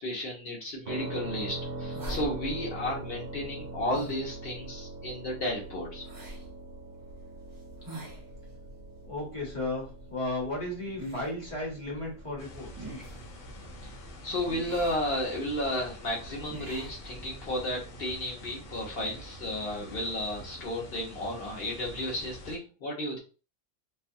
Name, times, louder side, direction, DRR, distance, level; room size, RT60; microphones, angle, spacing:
voice 1, 0.0-6.0 14.2-23.2, left 1 dB, 55° left, -2 dB, 1.1 m, -33 dB
sound 1, 0.9-14.5, right 2 dB, 60° right, 0.7 m, -43 dB
sound 2, 1.1-17.7, equal, 35° right, 0.3 m, -46 dB
voice 2, 9.0-12.7, left 2 dB, 30° left, -2 dB, 1.0 m, -34 dB
sound 3, 12.4-22.6, equal, 85° left, 1.2 m, -46 dB
2.7 x 2.2 x 2.6 m, 0.33 s
omnidirectional pair, 1.2 m